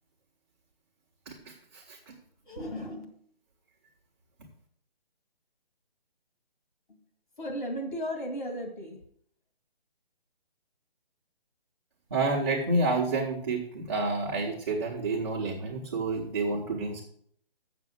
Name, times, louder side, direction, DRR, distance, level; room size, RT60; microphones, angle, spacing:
voice 1, 2.5-3.0 7.4-9.0, equal, 55° left, 3 dB, 2.4 m, -35 dB
voice 2, 12.1-17.0, right 2 dB, 25° right, -5 dB, 1.2 m, -29 dB
7.4 x 7.0 x 6.0 m, 0.63 s
hypercardioid pair, 175°, 30 cm